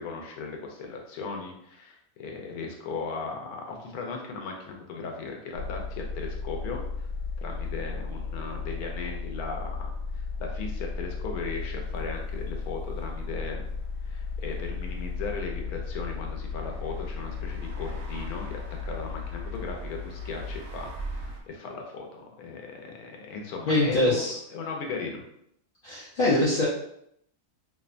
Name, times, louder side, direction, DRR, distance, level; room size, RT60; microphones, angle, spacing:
voice 1, 0.0-6.8 7.4-13.6 14.1-20.9 21.2-24.3 24.5-25.2, left 4 dB, 90° left, 2 dB, 1.1 m, -37 dB
sound 1, 5.5-21.4, left 4 dB, 65° right, 0.7 m, -35 dB
voice 2, 23.7-24.4 25.8-26.7, left 1 dB, 60° left, -8 dB, 0.5 m, -23 dB
2.8 x 2.1 x 2.4 m, 0.73 s
omnidirectional pair, 1.6 m